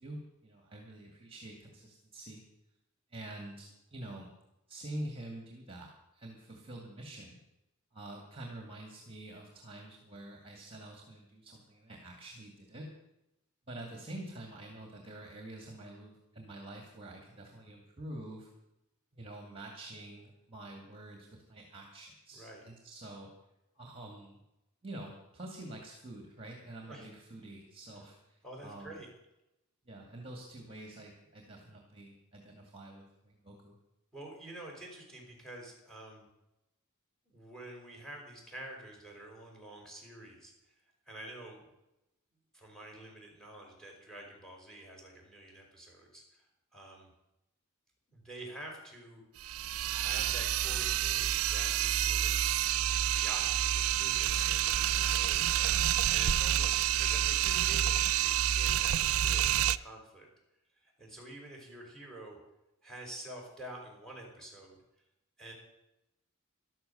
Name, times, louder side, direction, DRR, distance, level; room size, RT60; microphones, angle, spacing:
voice 1, 0.0-2.4 3.1-4.3 4.7-7.4 7.9-12.9 13.7-18.5 19.1-23.3 23.8-24.4 24.8-29.0 29.8-33.8, right 1 dB, 25° right, 2 dB, 2.3 m, -47 dB
voice 2, 22.3-22.6 26.9-27.1 28.4-29.1 34.1-36.3 37.3-40.7 41.1-41.6 42.5-46.5 46.7-47.1 48.1-49.2 49.9-52.4 53.0-60.3 60.8-62.4 62.8-64.7 65.4-65.5, right 1 dB, 5° left, 0 dB, 5.1 m, -48 dB
sound 1, 49.4-59.8, right 11 dB, 80° right, 0.5 m, -29 dB
13.5 x 12.0 x 6.8 m, 0.89 s
head